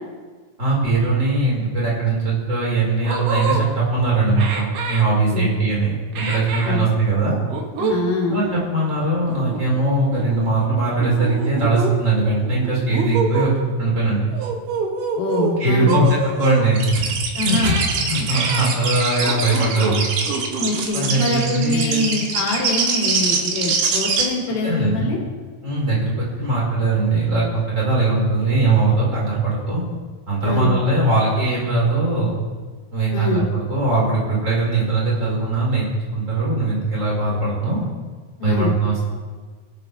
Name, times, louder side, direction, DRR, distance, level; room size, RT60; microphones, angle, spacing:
voice 1, 0.6-7.3 8.3-13.5 13.8-14.3 15.6-17.1 17.4-20.1 20.9-22.0 24.6-25.1 25.6-29.8 30.3-32.4 32.9-35.9 36.1-37.8 38.4-39.1, right 2 dB, 20° right, -5 dB, 4.8 m, -20 dB
sound 1, 2.5-2.6 3.0-3.6 4.4-5.0 6.1-6.7 7.5-8.0 8.3-8.5 9.3-9.8 10.1-10.4 11.0-11.9 12.4-13.5 14.3-15.6 15.9-16.7 17.5-17.8 18.3-18.7 19.2-20.0 20.3-20.8, right 5 dB, 65° right, 2.9 m, -26 dB
voice 2, 7.8-8.6 15.2-16.0 17.4-17.7 20.6-25.2 30.4-30.8 33.1-33.5 38.4-38.7, left 2 dB, 85° left, -2 dB, 4.7 m, -24 dB
sound 2, 16.7-24.2, right 5 dB, 85° right, 3.5 m, -23 dB
20.5 x 13.0 x 3.4 m, 1.4 s
omnidirectional pair, 4.3 m